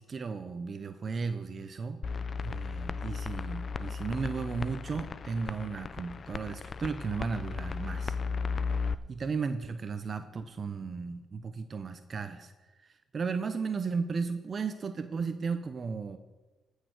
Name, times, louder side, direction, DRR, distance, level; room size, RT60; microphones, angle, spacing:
voice 1, 0.0-2.0 2.4-8.2 9.1-12.5 12.8-16.2, right 5 dB, 40° right, 9 dB, 0.7 m, -35 dB
sound 1, 2.0-8.9, left 5 dB, 45° left, 0.5 m, -35 dB
13.5 x 6.5 x 6.4 m, 1.2 s
cardioid pair, 90°, 0 cm